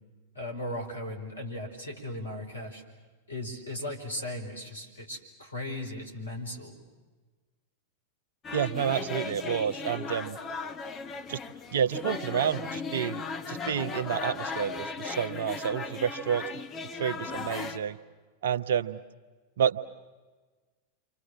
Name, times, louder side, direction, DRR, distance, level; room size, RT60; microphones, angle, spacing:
voice 1, 0.3-2.8 3.3-6.8, left 1 dB, 80° left, 2 dB, 4.9 m, -37 dB
sound 1, 8.4-17.8, left 4 dB, 25° left, 1.7 m, -37 dB
voice 2, 8.5-10.4 11.3-11.4 11.7-16.5 17.0-18.0 18.4-19.0 19.6-19.8, right 8 dB, 60° right, 13 dB, 1.0 m, -29 dB
29.5 x 25.5 x 7.4 m, 1.3 s
figure-of-eight pair, 90°, 0 cm